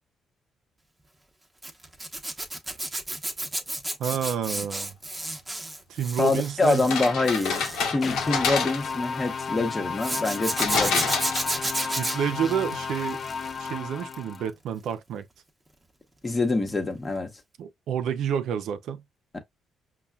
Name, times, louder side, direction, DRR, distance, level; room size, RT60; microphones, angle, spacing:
Zipper (clothing), 1.6-9.0 10.0-13.7 14.0-14.4 16.7-16.8 17.1-17.2, right 1 dB, 15° right, 0.9 m, -32 dB
voice 1, 4.0-4.9 5.9-6.8 11.6-13.2 13.6-15.3 17.6-19.0, right 8 dB, 80° right, 0.5 m, -29 dB
voice 2, 6.2-11.1 16.2-17.3 19.3-19.4, left 3 dB, 25° left, 0.9 m, -26 dB
sound 1, 6.7-9.1 10.6-11.9, left 5 dB, 90° left, 0.9 m, -28 dB
sound 2, 8.0-14.5, left 5 dB, 50° left, 0.4 m, -33 dB
5.4 x 2.2 x 2.3 m
cardioid pair, 90°, 0 cm